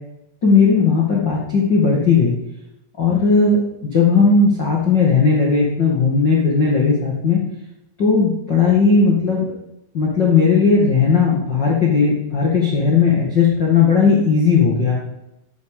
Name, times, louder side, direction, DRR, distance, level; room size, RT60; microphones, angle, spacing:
voice 1, 0.4-2.3 3.0-7.4 8.0-9.4 9.9-15.0, left 5 dB, 75° left, -3 dB, 1.0 m, -16 dB
12.0 x 9.6 x 6.7 m, 0.87 s
omnidirectional pair, 5.7 m